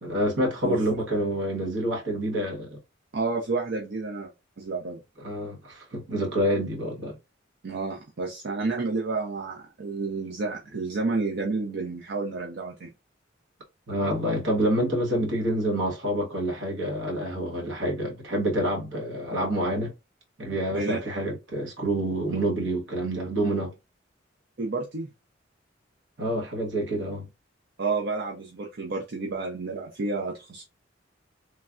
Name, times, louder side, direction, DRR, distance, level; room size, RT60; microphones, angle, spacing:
voice 1, 0.0-2.8 5.2-7.1 13.9-19.9 20.4-23.7 26.2-27.3, right 1 dB, 75° right, 1.2 m, -27 dB
voice 2, 3.1-4.3 4.6-5.0 7.6-12.9 20.7-21.0 24.6-25.1 27.8-30.6, right 3 dB, 60° right, 0.5 m, -30 dB
3.2 x 2.3 x 2.4 m
head